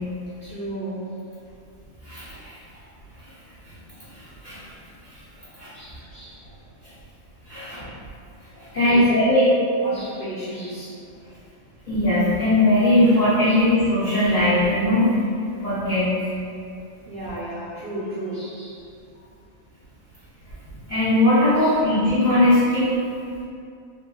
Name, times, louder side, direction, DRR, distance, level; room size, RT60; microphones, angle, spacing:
voice 1, 0.4-1.1 5.7-6.4 7.5-7.8 8.8-9.4 9.8-10.9 13.4-13.6 17.1-18.8 21.6-21.7, right 1 dB, 55° right, -11 dB, 0.7 m, -34 dB
voice 2, 2.0-2.5 4.4-4.7 5.6-5.7 7.5-7.8 8.6-9.4 11.9-15.1 15.6-16.1 20.9-22.9, left 1 dB, 50° left, -13 dB, 0.5 m, -19 dB
3.1 x 2.4 x 2.2 m, 2.4 s
omnidirectional pair, 1.4 m